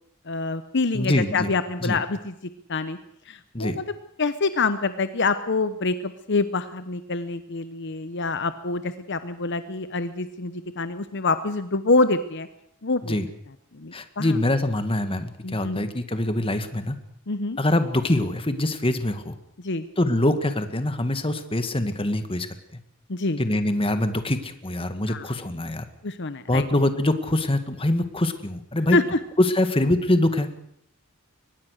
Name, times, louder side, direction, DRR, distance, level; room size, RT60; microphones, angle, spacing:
voice 1, 0.3-2.3 2.7-3.0 3.3-3.8 4.2-12.5 12.8-13.1 13.7-14.4 15.4-15.9 17.3-17.6 19.6-19.8 23.1-23.4 25.1-25.2 26.0-26.6 28.9-29.0, left 3 dB, 55° left, 11 dB, 1.0 m, -26 dB
voice 2, 0.9-1.5 1.8-2.0 3.5-3.8 13.0-13.3 13.9-17.0 17.6-19.4 20.0-22.5 23.4-25.9 26.5-29.0 29.4-30.5, left 1 dB, 25° left, 9 dB, 1.8 m, -24 dB
23.5 x 20.0 x 6.6 m, 0.70 s
head